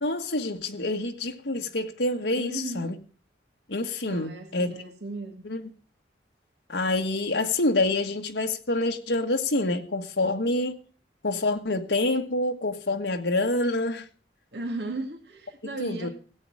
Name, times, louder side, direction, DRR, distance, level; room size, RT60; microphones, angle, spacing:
voice 1, 0.0-2.9 3.7-4.7 5.4-5.7 6.7-10.8 11.2-14.1 15.8-16.1, left 2 dB, 75° left, 3 dB, 1.6 m, -27 dB
voice 2, 2.4-3.0 4.1-5.4 14.5-16.1, right 2 dB, 70° right, 4 dB, 2.5 m, -36 dB
17.0 x 8.5 x 4.9 m, 0.39 s
head